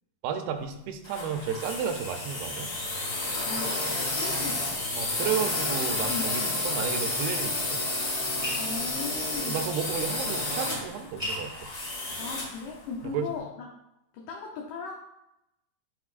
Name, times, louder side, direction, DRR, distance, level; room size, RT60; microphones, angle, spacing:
voice 1, 0.2-2.7 5.0-7.8 9.5-11.7 13.1-13.3, right 7 dB, 80° right, 6 dB, 2.3 m, -32 dB
sound 1, 1.0-12.6, left 2 dB, 40° left, 1.9 m, -31 dB
voice 2, 3.3-4.8 6.1-6.7 8.6-9.7 12.2-13.7 14.1-15.1, left 4 dB, 80° left, -1 dB, 1.9 m, -38 dB
sound 2, 8.1-13.1, equal, 20° right, 1.0 m, -44 dB
10.5 x 4.1 x 2.5 m, 0.86 s
omnidirectional pair, 4.4 m